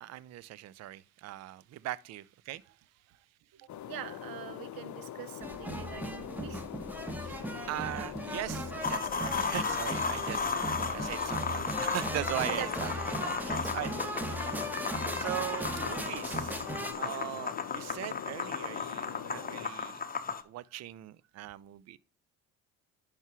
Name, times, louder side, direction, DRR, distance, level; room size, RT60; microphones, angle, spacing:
voice 1, 0.0-2.8 7.2-12.9 13.2-13.9 15.1-16.7 16.9-20.0 20.4-22.0, right 14 dB, 40° right, 0.5 m, -40 dB
voice 2, 3.5-6.6 9.4-9.5 12.5-12.7 13.4-14.5 17.0-17.2 19.4-19.5, right 12 dB, 55° right, 0.9 m, -44 dB
sound 1, 3.7-19.7, left 11 dB, 45° left, 0.7 m, -43 dB
sound 2, 5.4-16.9, right 1 dB, 5° right, 1.2 m, -38 dB
sound 3, 8.8-20.4, left 5 dB, 20° left, 0.9 m, -35 dB
10.5 x 4.9 x 3.0 m
hypercardioid pair, 55°, 42 cm